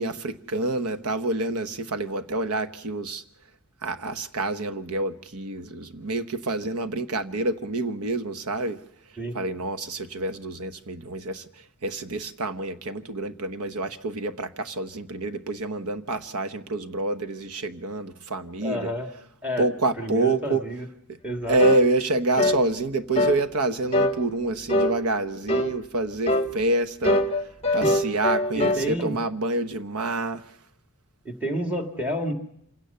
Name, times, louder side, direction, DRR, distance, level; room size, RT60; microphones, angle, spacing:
voice 1, 0.0-3.2 3.8-8.8 9.3-11.4 11.8-18.9 19.6-20.6 21.5-27.2 27.7-30.4, right 2 dB, 80° right, 1.1 m, -27 dB
voice 2, 18.6-19.1 19.4-19.7 20.0-20.9 21.2-21.6 27.7-27.9 28.5-29.2 31.2-32.3, equal, 5° right, 2.1 m, -30 dB
sound 1, 21.6-21.8 22.4-22.6 23.1-23.4 23.9-24.2 24.7-24.9 25.5-25.7 26.3-26.5 27.0-28.8, left 1 dB, 25° left, 1.0 m, -22 dB
26.5 x 17.0 x 6.9 m
head